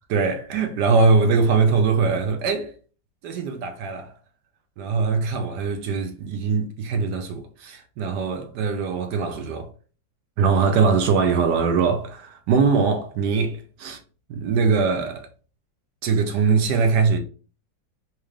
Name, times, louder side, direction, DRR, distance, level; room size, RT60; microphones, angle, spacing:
voice 1, 0.1-2.7 3.2-4.1 4.8-9.7 10.4-14.0 14.3-15.2 16.0-17.2, right 5 dB, 70° right, 1.1 m, -22 dB
4.3 x 2.3 x 3.2 m
omnidirectional pair, 2.0 m